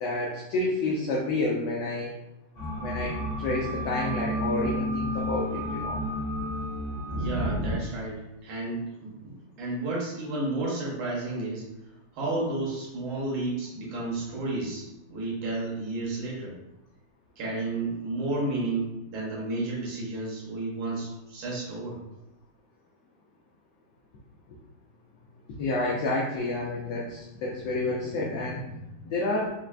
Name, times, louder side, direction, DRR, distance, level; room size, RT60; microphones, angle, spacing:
voice 1, 0.0-2.1 2.8-6.0 25.6-29.5, left 2 dB, 70° left, -3 dB, 1.1 m, -29 dB
sound 1, 2.5-7.7, equal, 30° left, 0.8 m, -31 dB
voice 2, 7.1-11.6 12.1-16.6 17.4-22.0, right 2 dB, 75° right, -5 dB, 1.7 m, -32 dB
4.4 x 2.4 x 2.4 m, 0.90 s
omnidirectional pair, 2.2 m